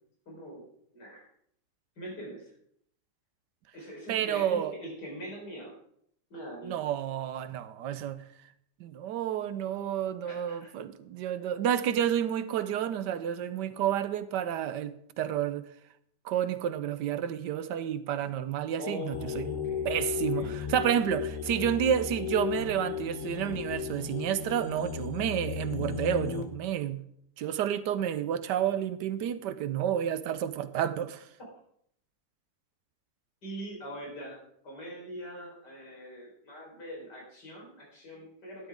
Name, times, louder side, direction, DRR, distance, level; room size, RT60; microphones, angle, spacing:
voice 1, 0.3-0.6 0.9-1.3 2.0-2.5 3.7-5.7 6.3-6.8 10.2-10.7 18.7-20.6 33.4-34.4 34.6-38.7, equal, 75° left, 4.8 m, -42 dB
voice 2, 4.1-4.7 6.6-8.2 8.8-15.6 16.2-19.4 19.8-27.0 27.4-31.2, right 9 dB, 85° right, 1.3 m, -30 dB
sound 1, 19.1-26.4, left 7 dB, 55° left, 1.5 m, -35 dB
12.5 x 10.5 x 3.6 m
omnidirectional pair, 1.8 m